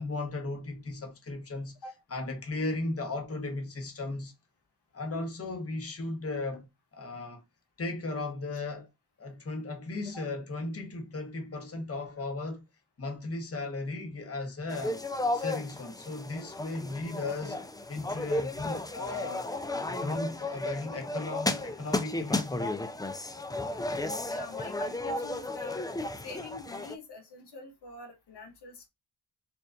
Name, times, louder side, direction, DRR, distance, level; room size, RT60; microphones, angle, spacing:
voice 1, 0.0-1.7 2.1-4.3 4.9-6.7 6.9-7.4 7.8-8.9 9.2-12.6 13.0-15.0 15.3-17.6 17.9-19.5 19.9-22.8, left 2 dB, 35° left, 1.1 m, -36 dB
sound 1, 14.7-27.0, left 2 dB, 10° left, 0.4 m, -34 dB
voice 2, 24.2-25.7 26.2-28.9, left 2 dB, 75° left, 1.0 m, -45 dB
4.5 x 2.5 x 2.5 m
cardioid pair, 55°, 40 cm